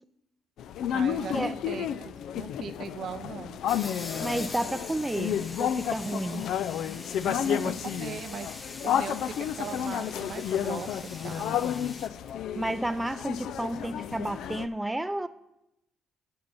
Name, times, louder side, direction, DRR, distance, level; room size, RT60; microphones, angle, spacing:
sound 1, 0.6-14.7, left 9 dB, 75° left, 0.3 m, -31 dB
voice 1, 0.9-3.6 7.2-11.6, right 7 dB, 65° right, 10 dB, 0.6 m, -40 dB
sound 2, 3.7-12.1, left 3 dB, 40° left, 1.0 m, -43 dB
voice 2, 4.2-6.4 12.6-15.3, right 1 dB, 10° right, 11 dB, 0.4 m, -31 dB
7.8 x 7.1 x 5.5 m, 0.86 s
supercardioid pair, 70°, 0 cm